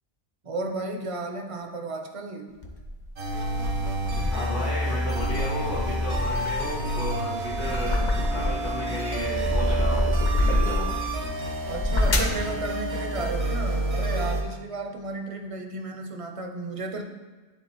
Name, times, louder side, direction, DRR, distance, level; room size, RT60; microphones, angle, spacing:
voice 1, 0.4-2.6 11.7-17.0, right 2 dB, 40° right, 4 dB, 0.6 m, -33 dB
sound 1, 2.6-4.5 5.0-8.7 9.1-11.0 11.6-12.4, left 1 dB, 50° left, 0.9 m, -27 dB
sound 2, 3.2-14.4, right 1 dB, 70° right, 1.2 m, -29 dB
voice 2, 4.3-10.1 10.4-10.9, left 1 dB, 85° left, -10 dB, 2.0 m, -33 dB
10.5 x 3.8 x 2.9 m, 1.3 s
omnidirectional pair, 1.1 m